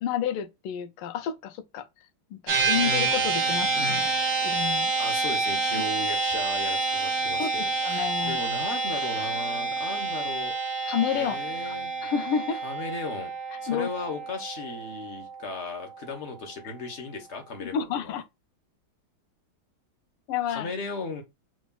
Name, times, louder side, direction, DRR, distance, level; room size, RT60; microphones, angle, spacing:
voice 1, 0.0-1.9 2.3-4.1 4.4-4.9 5.7-5.8 7.4-8.4 10.9-11.4 11.7-11.8 12.0-12.6 13.7-13.9 16.6-16.7 17.6-18.2 20.3-20.7, left 8 dB, 85° left, 1.5 m, -30 dB
sound 1, 2.5-16.0, right 3 dB, 50° right, 2.1 m, -28 dB
voice 2, 5.0-10.5 11.1-11.9 12.6-13.3 13.6-18.2 20.5-21.2, left 3 dB, 45° left, 1.0 m, -36 dB
6.2 x 3.2 x 2.2 m
omnidirectional pair, 2.3 m